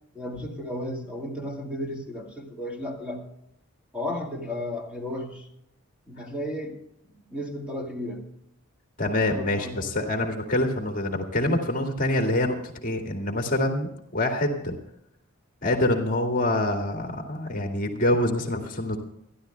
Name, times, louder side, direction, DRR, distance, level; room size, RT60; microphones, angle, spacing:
voice 1, 0.1-3.3 3.9-5.5 6.1-6.8 7.3-8.3 9.3-9.9, left 1 dB, 5° right, 0 dB, 2.2 m, -34 dB
voice 2, 9.0-14.8 15.6-19.0, left 1 dB, 40° left, 2 dB, 2.1 m, -26 dB
28.5 x 11.5 x 2.2 m, 0.74 s
head